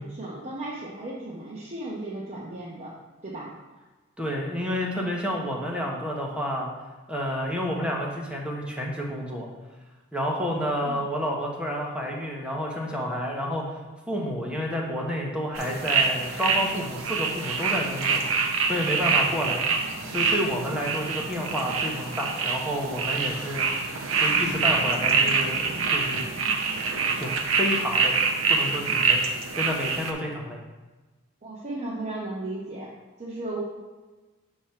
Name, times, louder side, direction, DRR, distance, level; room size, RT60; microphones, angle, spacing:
voice 1, 0.0-2.9 3.2-3.5 10.8-11.0 31.4-32.9 33.2-33.6, right 2 dB, 35° right, -6 dB, 0.9 m, -35 dB
voice 2, 4.2-6.7 7.1-9.5 10.1-13.8 14.1-18.2 18.7-19.6 20.1-23.6 24.2-26.2 27.1-28.1 28.5-29.2 29.6-30.6, equal, 5° right, -2 dB, 1.0 m, -30 dB
sound 1, 15.5-30.1, right 4 dB, 80° right, 0.7 m, -25 dB
6.6 x 3.0 x 5.7 m, 1.2 s
head